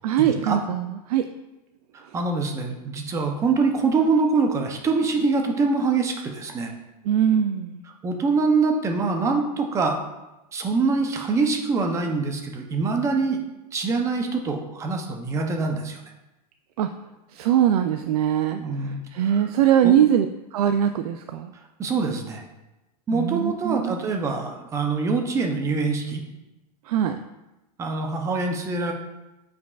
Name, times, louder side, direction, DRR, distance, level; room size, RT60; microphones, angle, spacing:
voice 1, 0.0-1.3 7.0-7.8 16.8-16.9 17.3-20.3 20.5-21.5 23.1-24.0 26.9-27.2, right 10 dB, 70° right, 8 dB, 0.4 m, -22 dB
voice 2, 1.9-6.7 8.0-10.0 10.5-13.4 13.7-16.0 18.6-19.0 19.3-19.4 19.8-19.9 21.8-22.4 23.1-26.2 27.8-28.9, right 4 dB, 15° right, 3 dB, 0.6 m, -24 dB
8.1 x 4.9 x 2.4 m, 1.0 s
supercardioid pair, 155°, 20 cm